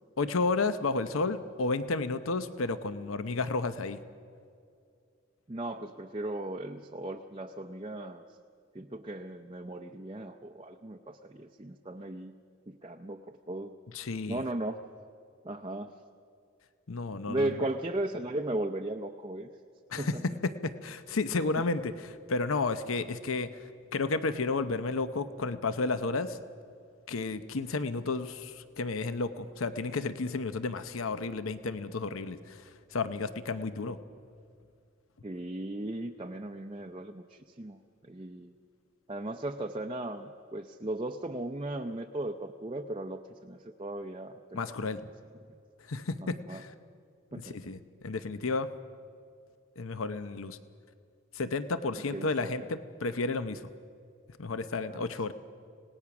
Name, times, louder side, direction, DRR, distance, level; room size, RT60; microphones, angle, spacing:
voice 1, 0.2-4.0 13.9-14.4 16.9-17.5 19.9-20.1 20.4-23.5 23.9-26.4 27.1-34.0 44.5-45.0 45.9-46.7 47.4-48.7 49.8-50.6 51.3-53.6 54.4-55.3, left 3 dB, 75° left, 12 dB, 0.8 m, -32 dB
voice 2, 5.5-8.3 8.7-12.3 12.7-13.7 14.3-14.8 15.4-16.0 17.3-19.5 20.0-20.2 35.2-37.8 38.0-38.5 39.1-44.9 46.2-46.6 47.3-47.7 52.1-52.5 54.9-55.1, right 1 dB, 25° right, 3 dB, 0.6 m, -37 dB
27.0 x 18.5 x 6.0 m, 2.3 s
head